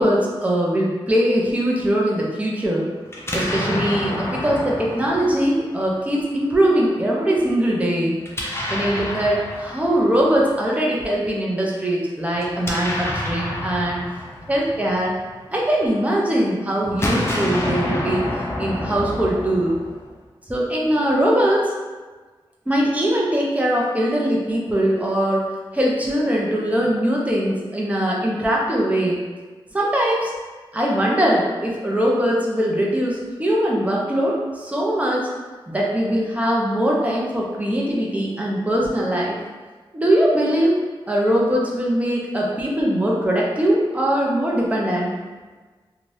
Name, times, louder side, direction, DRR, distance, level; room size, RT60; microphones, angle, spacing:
voice 1, 0.0-2.9 3.3-8.2 8.7-14.0 14.5-15.1 15.5-18.2 18.6-19.8 20.5-21.7 22.7-25.5 25.7-29.2 29.7-30.3 30.7-35.3 35.7-39.4 39.9-40.8 41.1-45.1, right 1 dB, 15° right, -3 dB, 0.6 m, -21 dB
Explosion, 3.1-6.1 8.2-10.5 12.3-15.8 16.8-20.2, left 1 dB, 25° left, 0.5 m, -28 dB
2.7 x 2.3 x 3.2 m, 1.3 s
wide cardioid pair, 105°, 9 cm